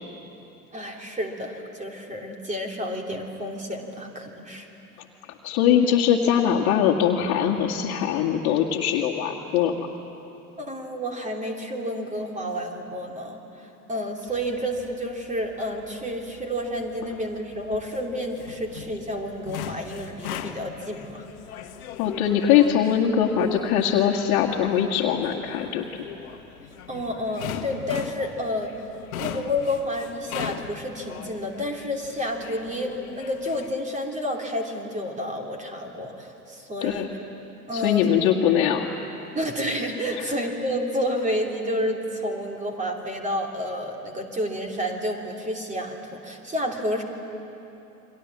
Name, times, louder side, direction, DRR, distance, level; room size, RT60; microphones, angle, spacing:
voice 1, 0.7-4.7 10.6-21.3 26.9-28.7 29.2-37.1 37.7-38.0 39.3-47.0, equal, 15° right, 2 dB, 3.1 m, -30 dB
voice 2, 5.2-9.9 22.0-25.9 36.8-37.1 37.7-38.9 40.2-40.3, left 9 dB, 45° left, -1 dB, 2.0 m, -22 dB
sound 1, 14.3-33.8, left 8 dB, 60° left, 1.5 m, -40 dB
29.5 x 23.5 x 7.5 m, 2.9 s
figure-of-eight pair, 80°, 46 cm